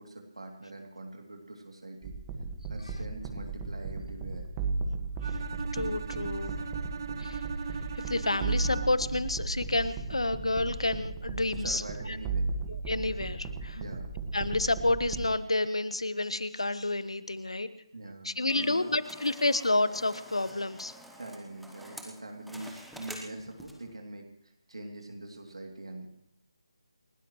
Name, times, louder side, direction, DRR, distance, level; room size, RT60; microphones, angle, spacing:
voice 1, 0.0-2.2 2.7-4.5 11.6-12.5 13.7-14.1 17.9-18.9 21.2-26.1, right 2 dB, 80° right, 1 dB, 2.8 m, -43 dB
sound 1, 2.0-15.3, right 3 dB, 15° right, 1.6 m, -35 dB
Bowed string instrument, 5.2-9.2, right 6 dB, 40° right, 0.6 m, -39 dB
voice 2, 5.7-6.5 7.2-7.4 8.1-11.8 12.7-13.8 14.3-17.7 18.2-20.9, left 2 dB, 80° left, 14 dB, 1.1 m, -29 dB
sound 2, 18.5-23.9, equal, ahead, 1.1 m, -48 dB
28.5 x 13.0 x 3.2 m, 0.79 s
figure-of-eight pair, 155°, 3 cm